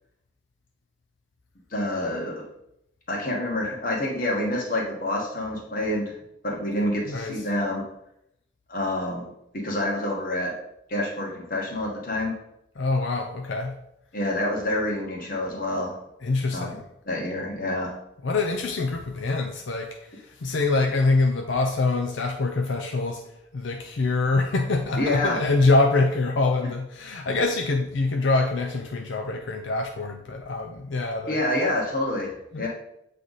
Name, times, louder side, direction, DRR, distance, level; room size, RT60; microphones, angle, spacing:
voice 1, 1.7-2.5 3.1-6.2 6.4-7.8 8.7-9.2 9.5-10.5 10.9-12.3 14.1-16.0 16.5-16.8 17.0-17.9 25.0-25.4 31.3-32.7, left 1 dB, 45° left, 1.4 m, -27 dB
voice 2, 7.1-7.4 12.8-13.8 16.2-16.8 18.2-23.2 23.5-31.4 32.5-32.7, left 3 dB, 85° left, 0.6 m, -25 dB
7.6 x 3.4 x 4.0 m
head